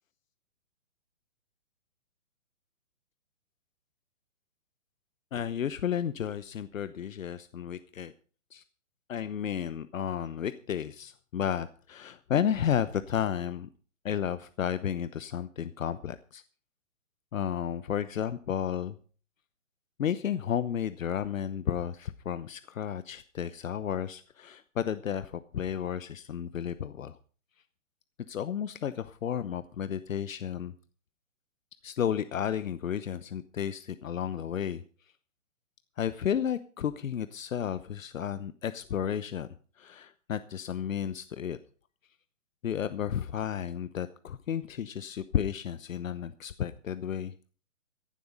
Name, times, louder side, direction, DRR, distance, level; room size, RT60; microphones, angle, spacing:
voice 1, 5.3-8.1 8.5-8.6 9.1-13.7 14.0-16.4 17.3-19.0 20.0-27.2 28.3-30.7 31.8-34.8 36.0-39.5 39.8-41.6 42.6-47.3, left 9 dB, 75° left, 13 dB, 1.0 m, -32 dB
14.0 x 11.5 x 5.1 m, 0.40 s
hypercardioid pair, 165°, 40 cm